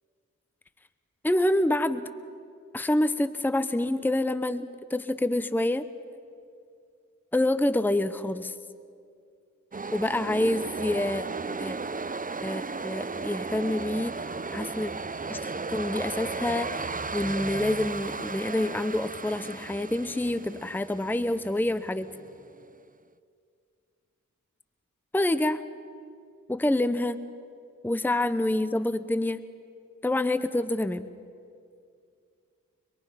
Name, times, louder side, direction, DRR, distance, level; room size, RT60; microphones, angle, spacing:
voice 1, 1.2-2.1 2.7-5.8 7.3-8.5 9.9-11.2 11.6-11.7 12.4-14.9 15.3-16.9 17.1-22.1 25.1-25.6 26.5-27.2 27.8-29.4 30.0-31.0, left 1 dB, 5° left, 13 dB, 0.8 m, -27 dB
sound 1, 9.7-22.6, right 4 dB, 25° right, 0.7 m, -35 dB
26.0 x 22.5 x 5.7 m, 2.3 s
cardioid pair, 45°, 32 cm